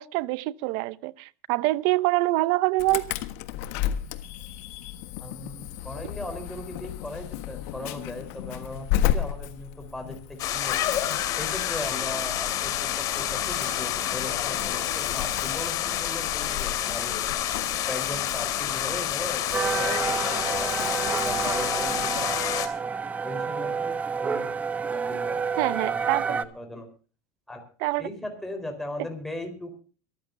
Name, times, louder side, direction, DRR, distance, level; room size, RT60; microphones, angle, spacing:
voice 1, 0.0-3.1 25.6-26.4 27.8-28.1, right 20 dB, 65° right, 0.7 m, -25 dB
Insect / Alarm, 2.8-22.2, left 11 dB, 75° left, 1.5 m, -35 dB
voice 2, 5.2-10.8 11.3-17.2 17.9-19.5 19.8-22.7 23.2-24.6 24.8-25.9 26.3-26.9 27.5-27.6 28.0-29.8, left 1 dB, 5° left, 4.2 m, -38 dB
sound 1, 10.4-22.7, left 11 dB, 45° left, 2.6 m, -28 dB
sound 2, 19.5-26.4, right 5 dB, 20° right, 0.8 m, -29 dB
23.5 x 14.0 x 2.7 m
cardioid pair, 145°, 8 cm